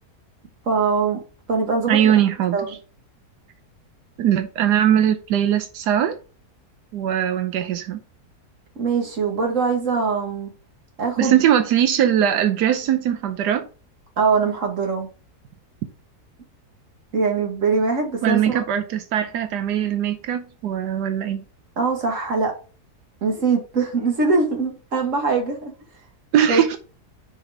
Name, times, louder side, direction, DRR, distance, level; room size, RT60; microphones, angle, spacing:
voice 1, 0.7-1.2 1.5-2.1 2.5-2.8 8.8-10.5 11.0-11.4 14.2-15.1 17.1-18.6 21.8-22.5 23.2-25.7 26.5-26.6, right 4 dB, 50° right, 2.1 m, -22 dB
voice 2, 1.9-2.6 4.2-6.2 6.9-8.0 11.2-13.7 18.2-21.4 26.3-26.8, right 10 dB, 90° right, 1.3 m, -20 dB
6.3 x 4.8 x 3.4 m
omnidirectional pair, 1.7 m